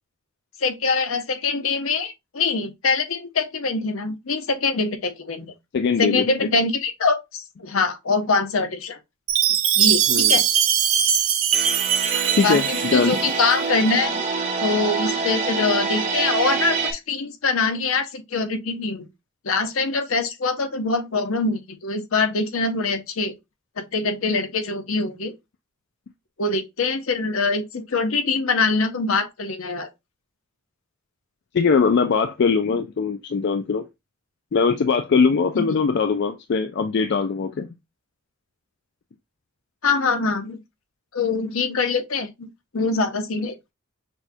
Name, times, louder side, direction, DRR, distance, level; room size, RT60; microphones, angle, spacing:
voice 1, 0.6-5.5 6.0-9.0 9.8-10.4 12.1-14.1 14.6-19.0 19.4-23.3 23.8-25.3 26.4-29.9 35.5-35.6 39.8-40.6 41.1-42.5 42.7-43.5, left 4 dB, 80° left, 0.8 m, -24 dB
voice 2, 5.7-6.3 10.1-10.4 12.3-13.2 31.5-33.8 34.5-37.7, left 5 dB, 55° left, 0.4 m, -21 dB
Chime, 9.3-13.4, right 9 dB, 85° right, 0.7 m, -21 dB
sound 1, 11.5-16.9, right 4 dB, 35° right, 0.9 m, -26 dB
6.1 x 2.3 x 2.7 m
head